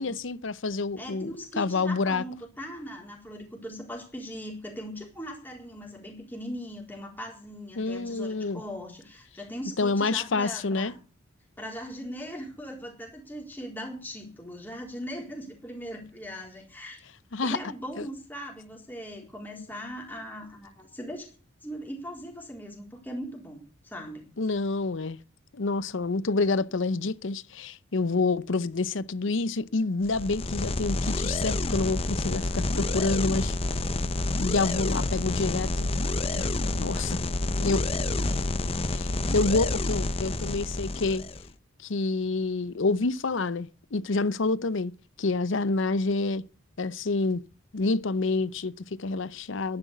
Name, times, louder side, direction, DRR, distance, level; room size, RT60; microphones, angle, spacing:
voice 1, 0.0-1.3 1.6-2.2 7.8-8.6 9.8-10.9 17.3-17.6 18.0-18.1 24.4-25.2 25.5-33.6 34.4-35.9 36.3-37.2 37.6-37.9 38.9-41.2 41.8-44.9 45.2-46.4 46.8-47.4 47.7-49.8, left 3 dB, 70° left, 0.7 m, -28 dB
voice 2, 1.0-11.0 11.6-17.0 17.4-21.3 21.6-24.3, equal, 10° left, 4.0 m, -40 dB
sound 1, 30.0-41.5, left 2 dB, 30° left, 0.7 m, -28 dB
11.5 x 10.5 x 8.2 m
head